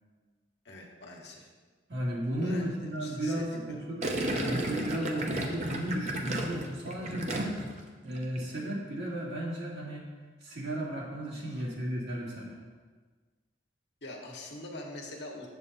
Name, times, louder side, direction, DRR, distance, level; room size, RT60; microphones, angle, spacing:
voice 1, 0.6-1.5 2.4-2.7 3.0-3.8 11.5-11.6 14.0-15.5, left 2 dB, 65° left, 0 dB, 1.4 m, -44 dB
voice 2, 1.9-7.7 8.0-10.0 10.4-12.6, right 1 dB, 65° right, -5 dB, 2.3 m, -34 dB
Gurgling, 4.0-7.8 8.1-8.5, right 1 dB, 40° right, 0.8 m, -33 dB
8.0 x 7.0 x 4.2 m, 1.4 s
head